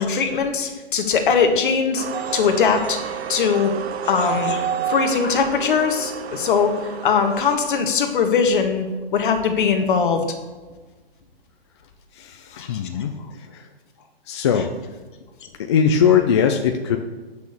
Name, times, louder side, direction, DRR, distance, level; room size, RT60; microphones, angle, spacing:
voice 1, 0.0-2.0 2.3-3.0 3.3-3.7 4.1-10.3 12.5-13.0, left 6 dB, 55° left, 5 dB, 1.6 m, -21 dB
sound 1, 2.0-7.5, right 8 dB, 85° right, 0.8 m, -29 dB
voice 2, 12.1-13.6 14.3-14.7 15.7-17.0, left 7 dB, 30° left, 4 dB, 0.5 m, -20 dB
8.2 x 6.3 x 6.8 m, 1.3 s
hypercardioid pair, 160°, 31 cm